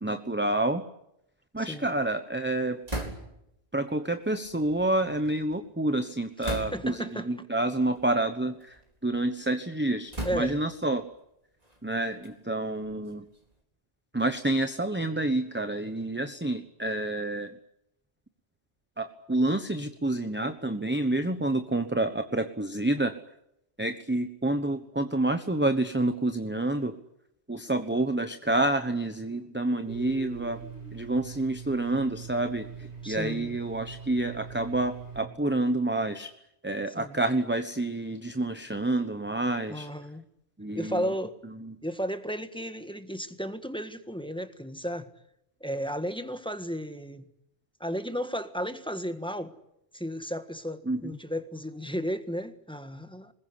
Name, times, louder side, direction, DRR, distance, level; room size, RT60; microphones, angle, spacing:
voice 1, 0.0-0.8 1.5-2.8 3.7-11.1 11.8-13.2 14.1-17.6 19.0-23.1 23.8-27.0 27.5-30.6 30.9-36.3 36.6-39.9 40.6-41.1 41.6-41.7 50.9-51.2, right 2 dB, 10° right, 1.0 m, -28 dB
voice 2, 1.6-1.9 6.4-7.3 10.2-10.6 33.0-33.6 36.9-37.2 39.7-40.2 40.7-41.3 41.8-45.1 45.6-47.2 47.8-49.5 49.9-53.3, equal, 5° left, 1.6 m, -34 dB
sound 1, 2.9-3.5 4.4-5.5 6.4-7.1 7.9-8.1 8.6-9.3 10.1-10.8 11.6-13.5, right 1 dB, 35° right, 4.2 m, -38 dB
Domestic sounds home sounds, 29.9-35.2, right 5 dB, 85° right, 7.1 m, -42 dB
26.0 x 21.0 x 9.8 m
omnidirectional pair, 1.1 m